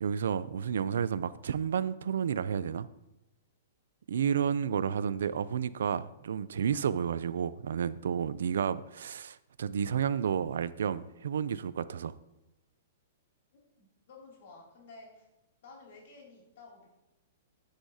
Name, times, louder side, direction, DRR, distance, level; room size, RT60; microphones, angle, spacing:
voice 1, 0.0-2.9 4.1-12.1, right 7 dB, 85° right, 16 dB, 0.4 m, -31 dB
voice 2, 13.5-15.3 15.6-16.9, left 3 dB, 50° left, -2 dB, 2.9 m, -53 dB
10.0 x 7.9 x 2.8 m, 0.95 s
hypercardioid pair, 175°, 0 cm